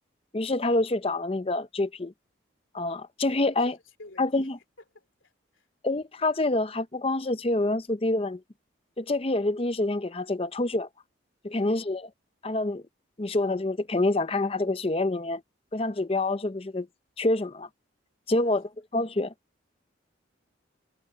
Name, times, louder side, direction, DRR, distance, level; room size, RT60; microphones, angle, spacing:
voice 1, 0.3-2.1 2.7-3.8 4.2-4.6 5.8-8.4 9.0-10.9 11.4-12.1 12.4-12.8 13.2-15.4 15.7-16.9 17.2-17.7 18.3-18.6 18.9-19.3, left 2 dB, 30° left, 0.6 m, -27 dB
voice 2, 3.5-4.5 4.9-5.7 11.5-11.9 18.4-18.6, left 2 dB, 90° left, 3.1 m, -51 dB
head